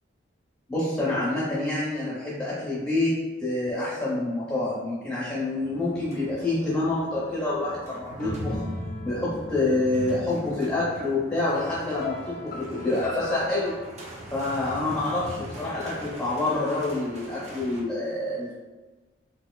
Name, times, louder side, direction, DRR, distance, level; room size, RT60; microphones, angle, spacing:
voice 1, 0.7-3.1 3.4-8.6 9.0-13.7 14.3-18.5, left 2 dB, 15° left, -8 dB, 0.7 m, -27 dB
sound 1, 5.5-17.8, equal, 35° right, 0.5 m, -40 dB
sound 2, 7.9-13.9, left 3 dB, 45° left, 0.4 m, -41 dB
4.4 x 2.6 x 2.2 m, 1.2 s
head